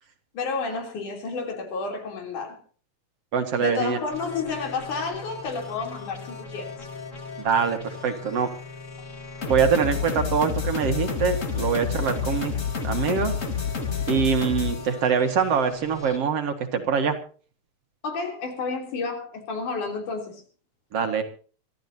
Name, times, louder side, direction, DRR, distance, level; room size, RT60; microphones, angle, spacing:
voice 1, 0.3-2.6 3.6-6.9 18.0-20.4, left 4 dB, 90° left, 4.8 m, -31 dB
voice 2, 3.3-4.0 7.4-8.5 9.5-12.5 12.8-13.3 14.1-17.2 20.9-21.2, right 6 dB, 55° right, 2.6 m, -24 dB
sound 1, 4.1-16.2, left 6 dB, 30° left, 1.6 m, -31 dB
24.5 x 14.0 x 2.8 m
omnidirectional pair, 3.4 m